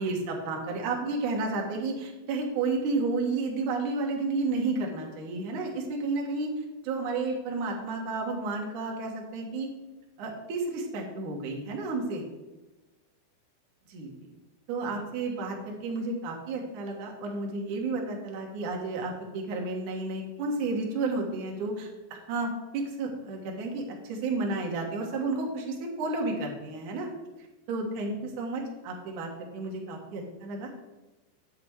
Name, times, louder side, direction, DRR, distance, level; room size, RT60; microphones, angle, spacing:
voice 1, 0.0-6.5 6.8-9.7 10.2-12.2 13.9-14.3 14.7-27.1 27.7-30.7, right 3 dB, 55° right, -1 dB, 2.8 m, -32 dB
11.0 x 7.3 x 4.8 m, 1.1 s
omnidirectional pair, 5.0 m